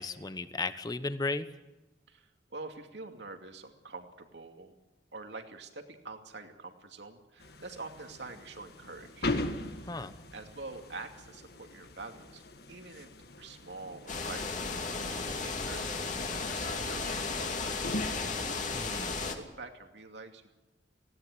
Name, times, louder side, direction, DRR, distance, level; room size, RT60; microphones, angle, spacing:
voice 1, 0.0-1.5 9.8-10.1 18.7-19.1, left 3 dB, 25° left, 11 dB, 1.0 m, -35 dB
voice 2, 2.1-4.8 5.1-9.3 9.7-9.9 10.3-14.6 14.9-18.0 19.0-20.5, right 3 dB, 80° right, 5 dB, 2.5 m, -46 dB
sound 1, 7.4-18.1, left 2 dB, 60° left, 1.8 m, -41 dB
sound 2, 14.1-19.4, left 4 dB, 45° left, 2.5 m, -34 dB
19.0 x 17.0 x 9.7 m, 1.1 s
head